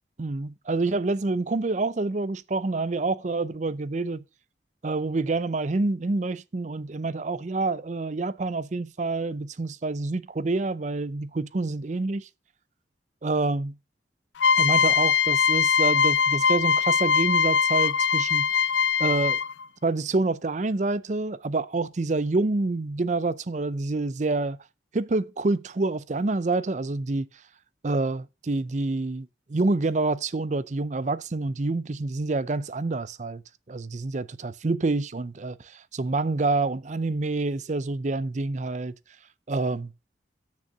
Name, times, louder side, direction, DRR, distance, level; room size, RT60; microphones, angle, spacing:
voice 1, 0.2-4.2 4.8-12.3 13.2-13.8 14.6-18.5 19.0-19.4 19.8-24.6 24.9-27.3 27.8-33.4 33.7-38.9 39.5-39.9, right 3 dB, 40° right, 0.5 m, -27 dB
sound 1, 14.4-19.6, left 6 dB, 80° left, 0.5 m, -22 dB
6.7 x 6.3 x 6.6 m
head